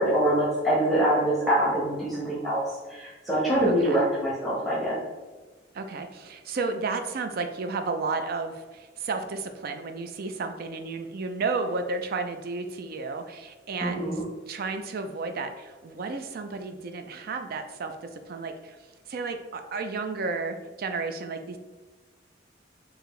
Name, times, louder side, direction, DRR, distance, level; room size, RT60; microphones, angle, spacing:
voice 1, 0.0-2.6 2.9-5.0 13.8-14.2, right 1 dB, ahead, -8 dB, 1.0 m, -24 dB
voice 2, 3.6-4.0 5.7-18.8 19.1-21.6, right 4 dB, 50° right, 7 dB, 0.4 m, -32 dB
4.7 x 2.6 x 3.1 m, 1.3 s
head